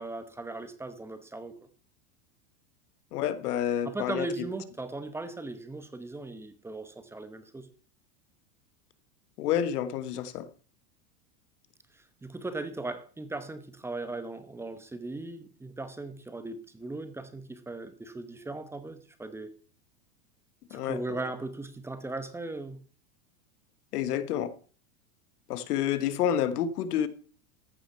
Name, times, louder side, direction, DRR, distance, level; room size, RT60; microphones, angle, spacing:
voice 1, 0.0-1.5 3.8-7.7 12.2-19.5 20.7-22.8, right 2 dB, 5° right, 0.9 m, -38 dB
voice 2, 3.1-4.3 9.4-10.5 20.7-21.2 23.9-24.5 25.5-27.1, left 10 dB, 85° left, 1.3 m, -29 dB
14.5 x 6.3 x 5.6 m
supercardioid pair, 145°, 45 cm